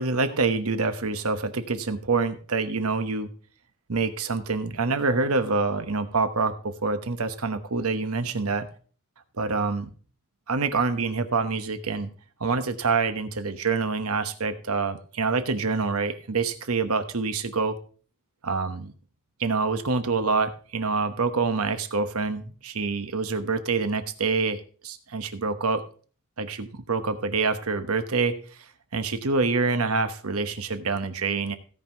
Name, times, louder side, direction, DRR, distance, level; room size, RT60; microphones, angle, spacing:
voice 1, 0.0-3.3 3.9-8.7 9.4-9.9 10.5-12.1 12.4-17.8 18.4-18.9 19.4-25.8 26.4-28.4 28.9-31.6, right 4 dB, 75° right, 10 dB, 1.1 m, -26 dB
16.0 x 5.7 x 4.5 m, 0.40 s
head